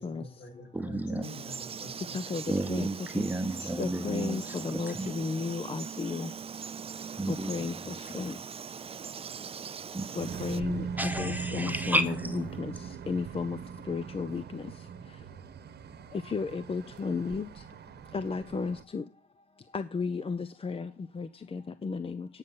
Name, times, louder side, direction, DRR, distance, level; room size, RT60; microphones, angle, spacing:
voice 1, 0.0-2.6 3.6-3.7, left 2 dB, 65° left, 5.8 m, -47 dB
voice 2, 0.7-1.2 2.5-4.5 4.9-5.1 7.2-8.3 9.9-10.2 11.0-12.4, right 1 dB, 10° right, 1.0 m, -32 dB
Frog, 1.2-10.6, right 7 dB, 30° right, 0.4 m, -41 dB
voice 3, 3.8-6.3 7.5-7.7 8.2-8.3 10.2-12.4 13.1-13.6 13.9-14.6 16.3-17.5 18.1-19.0 19.7-20.9 21.2-22.3, left 4 dB, 30° left, 0.6 m, -33 dB
sound 1, 10.2-18.8, right 6 dB, 55° right, 1.2 m, -40 dB
10.0 x 6.2 x 7.4 m
cardioid pair, 90°, 20 cm